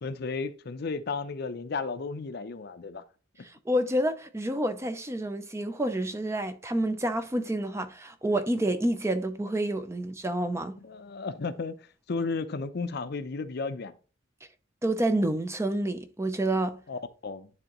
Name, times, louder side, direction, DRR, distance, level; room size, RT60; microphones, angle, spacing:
voice 1, 0.0-3.0 10.8-13.9 16.9-17.5, left 4 dB, 55° left, 0.5 m, -34 dB
voice 2, 3.4-10.8 14.8-16.8, right 1 dB, 15° right, 0.5 m, -28 dB
10.0 x 3.7 x 3.0 m
head